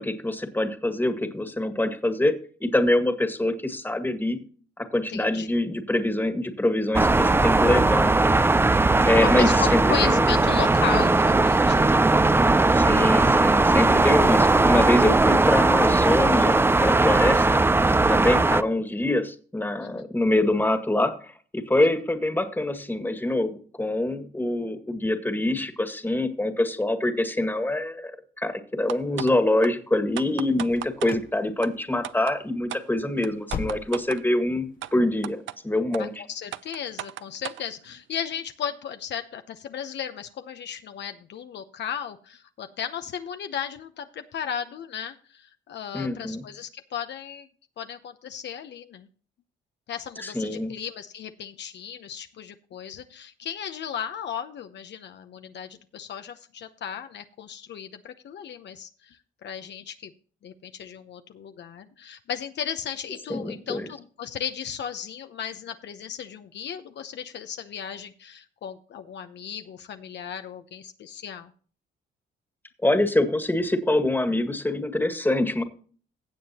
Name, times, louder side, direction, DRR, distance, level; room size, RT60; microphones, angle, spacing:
voice 1, 0.0-2.3 2.6-4.4 4.8-8.4 9.0-10.4 12.7-17.6 18.1-36.2 45.9-46.4 50.2-50.7 63.3-63.9 72.8-75.6, left 1 dB, 10° left, 8 dB, 1.7 m, -25 dB
voice 2, 5.1-5.5 9.2-12.0 19.8-19.9 36.0-47.5 47.8-49.1 49.9-60.1 60.4-71.5, left 8 dB, 60° left, 8 dB, 0.8 m, -35 dB
sound 1, 6.9-18.6, right 2 dB, 10° right, 0.4 m, -19 dB
sound 2, 28.9-29.3 29.6-29.7 30.2-31.2 31.6-31.7 32.0-32.4 32.7-32.8 33.2-34.2 34.8-34.9 35.2-35.6 35.9-36.0 36.5-37.6, right 13 dB, 75° right, 0.5 m, -35 dB
sound 3, 30.6-31.4 31.6-32.1 32.4-32.5 33.0-34.2 34.5-34.6 35.2-35.3, left 5 dB, 45° left, 1.1 m, -37 dB
16.0 x 7.4 x 2.9 m, 0.42 s
cardioid pair, 90°, 20 cm